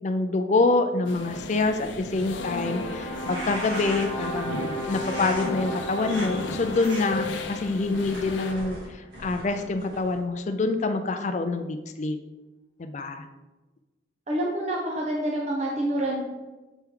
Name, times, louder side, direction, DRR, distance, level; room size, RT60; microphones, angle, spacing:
voice 1, 0.0-4.5 4.9-12.2 12.8-13.3, left 3 dB, 40° left, 8 dB, 0.4 m, -26 dB
sound 1, 1.1-8.5, left 3 dB, 85° left, 0.6 m, -35 dB
sound 2, 2.5-8.7, equal, 60° right, 1.9 m, -36 dB
sound 3, 3.1-4.3 5.0-5.5 6.0-6.3 6.7-7.0 7.6-10.2, right 1 dB, 85° right, 2.2 m, -39 dB
voice 2, 14.3-16.2, right 1 dB, 35° right, -2 dB, 0.8 m, -27 dB
7.1 x 4.5 x 3.6 m, 1.1 s
head